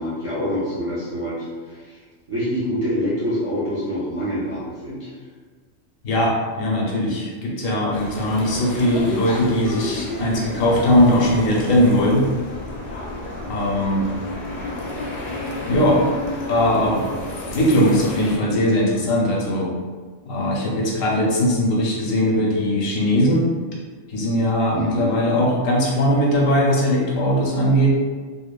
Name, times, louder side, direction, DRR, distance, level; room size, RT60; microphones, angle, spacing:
voice 1, 0.0-2.0 2.3-5.1 24.7-25.1, equal, 40° right, -10 dB, 0.4 m, -26 dB
voice 2, 6.0-12.3 13.5-14.0 15.7-16.0 16.5-17.1 17.5-19.7 20.3-23.5 24.1-27.9, equal, 85° left, -3 dB, 1.0 m, -19 dB
sound 1, 7.9-18.4, left 2 dB, 65° left, 0.8 m, -31 dB
2.9 x 2.1 x 2.2 m, 1.5 s
omnidirectional pair, 1.3 m